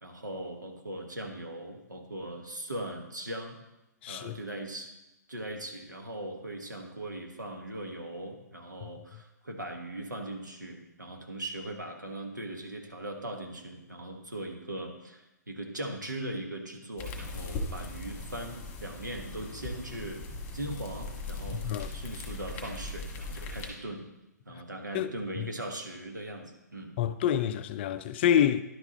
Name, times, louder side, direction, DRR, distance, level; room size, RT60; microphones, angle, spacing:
voice 1, 0.0-3.6 4.1-4.9 5.3-20.2 20.5-24.1 24.4-27.0, right 1 dB, 85° right, 1.5 m, -39 dB
voice 2, 4.0-4.4 21.5-21.9 24.5-24.6 24.9-25.1 25.4-25.5 27.0-28.6, left 9 dB, 35° left, 0.4 m, -27 dB
sound 1, 17.0-23.7, left 2 dB, 20° left, 1.6 m, -39 dB
11.0 x 4.8 x 4.2 m
figure-of-eight pair, 130°, 10 cm